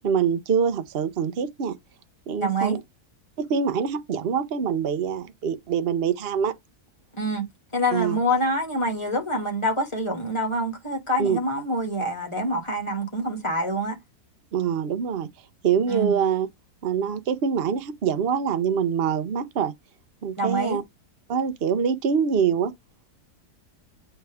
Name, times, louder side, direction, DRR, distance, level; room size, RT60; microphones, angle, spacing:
voice 1, 0.0-1.8 2.3-2.8 3.4-6.5 7.9-8.2 11.2-11.4 14.5-15.3 15.6-16.5 16.8-19.7 20.2-20.8 21.3-22.7, right 7 dB, 45° right, 0.9 m, -24 dB
voice 2, 2.4-2.8 7.1-7.5 7.7-14.0 15.9-16.2 20.4-20.8, equal, 20° left, 2.6 m, -26 dB
7.9 x 3.4 x 3.5 m
omnidirectional pair, 1.7 m